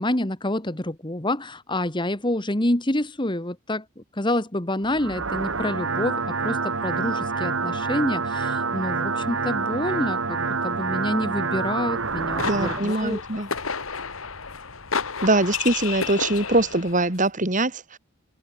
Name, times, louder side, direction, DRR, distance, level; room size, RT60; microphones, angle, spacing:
voice 1, 0.0-13.2, left 1 dB, 20° left, 1.8 m, -27 dB
sound 1, 4.8-12.8, right 4 dB, 70° right, 1.8 m, -27 dB
sound 2, 12.0-17.0, left 5 dB, 75° left, 2.4 m, -31 dB
voice 2, 12.4-13.5 15.2-18.0, right 2 dB, 35° right, 2.9 m, -23 dB
open air
head